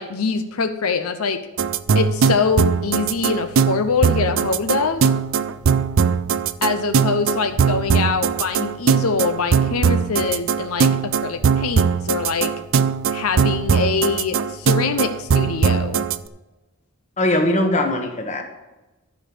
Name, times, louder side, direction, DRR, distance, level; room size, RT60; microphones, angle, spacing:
voice 1, 0.0-1.4 1.9-5.0 6.6-12.5 13.1-16.0, left 4 dB, 90° left, 8 dB, 0.7 m, -23 dB
sound 1, 1.6-16.2, right 6 dB, 65° right, 0.4 m, -20 dB
voice 2, 17.2-18.4, left 1 dB, 30° left, 3 dB, 1.3 m, -20 dB
11.5 x 5.2 x 6.7 m, 1.1 s
head